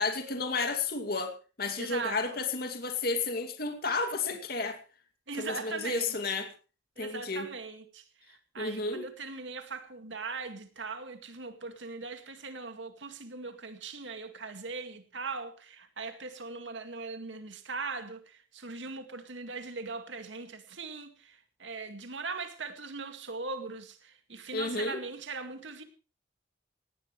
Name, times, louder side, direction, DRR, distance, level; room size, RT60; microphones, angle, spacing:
voice 1, 0.0-1.3 1.6-4.8 5.4-6.5 7.0-7.5 8.6-9.0 24.5-25.0, left 3 dB, 55° left, 2.5 m, -32 dB
voice 2, 1.8-2.2 5.3-6.3 7.0-25.8, right 4 dB, 80° right, 2.1 m, -40 dB
18.5 x 18.0 x 3.3 m
head